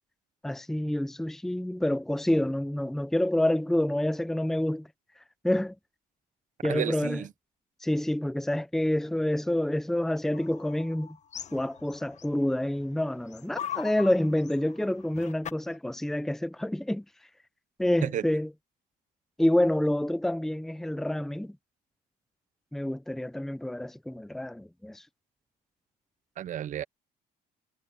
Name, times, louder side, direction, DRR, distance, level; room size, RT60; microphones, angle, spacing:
voice 1, 0.4-4.9 5.4-5.7 6.6-7.2 7.8-11.2 11.5-17.0 17.8-18.5 19.4-21.6 22.7-25.0, left 1 dB, ahead, 0.8 m, -28 dB
voice 2, 6.6-7.3 18.0-18.2 26.4-26.8, right 11 dB, 50° right, 0.7 m, -32 dB
sound 1, 10.3-12.8 13.1-15.8, left 9 dB, 45° left, 1.3 m, -41 dB
cardioid pair, 110°, 17 cm